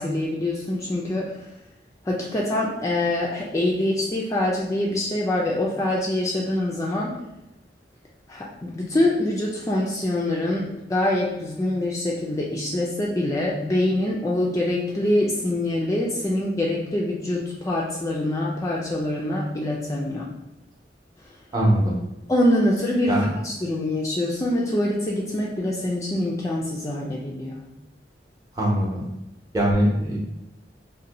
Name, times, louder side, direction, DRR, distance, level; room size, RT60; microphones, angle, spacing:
voice 1, 0.0-1.5 2.0-7.2 8.3-20.3 21.2-21.3 22.3-27.6, left 1 dB, 20° left, -4 dB, 0.4 m, -25 dB
voice 2, 21.5-22.0 23.1-23.3 28.6-29.1 29.5-30.2, equal, 20° right, -3 dB, 0.8 m, -21 dB
2.6 x 2.2 x 4.0 m, 0.93 s
head